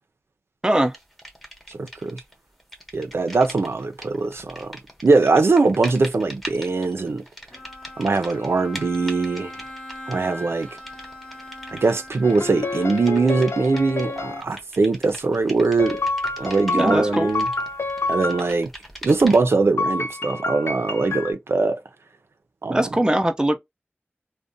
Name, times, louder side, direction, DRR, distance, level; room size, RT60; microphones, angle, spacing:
voice 1, 0.6-0.9 16.7-17.3 22.7-23.6, right 1 dB, 15° right, 0.5 m, -21 dB
sound 1, 0.9-2.3 2.6-19.6, equal, 5° left, 0.8 m, -42 dB
voice 2, 1.7-2.2 2.9-4.7 5.0-7.2 8.0-9.5 10.1-10.7 11.7-16.0 16.4-17.5 18.1-18.7 19.0-21.8 22.6-22.9, right 3 dB, 80° right, 0.4 m, -21 dB
Bowed string instrument, 7.5-13.9, left 1 dB, 35° left, 0.8 m, -41 dB
sound 2, 12.2-14.4 15.8-18.5 19.8-21.3, left 3 dB, 85° left, 0.4 m, -28 dB
2.5 x 2.1 x 2.5 m
wide cardioid pair, 60°, 4 cm